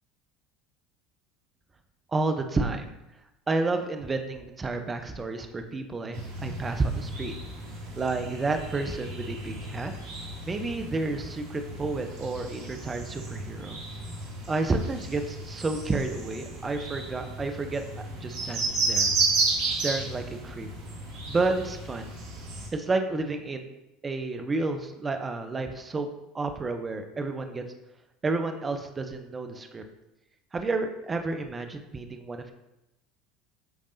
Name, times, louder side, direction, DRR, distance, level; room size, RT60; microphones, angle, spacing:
voice 1, 2.1-2.9 3.5-7.3 8.0-9.9 10.5-13.8 14.5-19.1 19.7-20.7 21.3-22.1 22.7-23.7 24.0-26.1 26.3-27.6 28.2-29.8 30.5-32.5, right 3 dB, 25° right, 6 dB, 1.0 m, -30 dB
sound 1, 6.1-22.7, right 3 dB, 65° right, 2.1 m, -33 dB
13.0 x 5.2 x 2.8 m, 0.92 s
hypercardioid pair, 70°, 0 cm